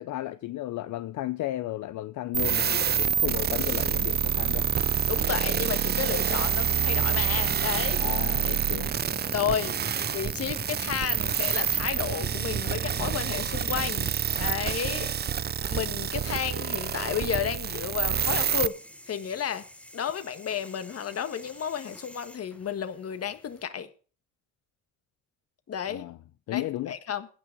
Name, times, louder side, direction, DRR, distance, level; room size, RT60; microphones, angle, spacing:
voice 1, 0.0-4.7 8.0-9.6 25.9-26.2 26.5-27.0, left 15 dB, 75° left, 0.7 m, -34 dB
sound 1, 2.3-18.7, right 8 dB, 35° right, 0.5 m, -27 dB
Truck, 3.5-14.7, right 3 dB, 15° right, 1.3 m, -42 dB
voice 2, 5.1-8.1 8.4-8.6 9.3-9.8 10.1-15.1 15.7-18.8 19.1-19.6 19.9-23.9 25.7-26.0 26.5-27.3, left 8 dB, 50° left, 1.6 m, -32 dB
sound 2, 17.7-23.7, left 1 dB, 5° left, 1.3 m, -51 dB
16.0 x 6.2 x 6.6 m
cardioid pair, 90°, 30 cm